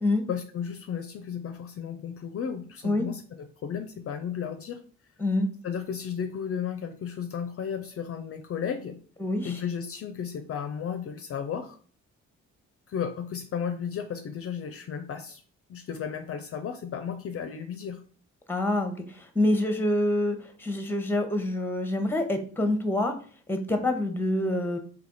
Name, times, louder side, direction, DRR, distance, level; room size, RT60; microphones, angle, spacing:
voice 1, 0.3-4.8 5.6-9.0 9.4-11.8 12.9-15.4 15.7-18.0, left 7 dB, 50° left, 8 dB, 0.5 m, -34 dB
voice 2, 9.2-9.5 18.5-23.1 23.5-24.8, left 1 dB, 5° left, 7 dB, 0.8 m, -26 dB
3.4 x 2.9 x 3.9 m, 0.42 s
cardioid pair, 90°, 30 cm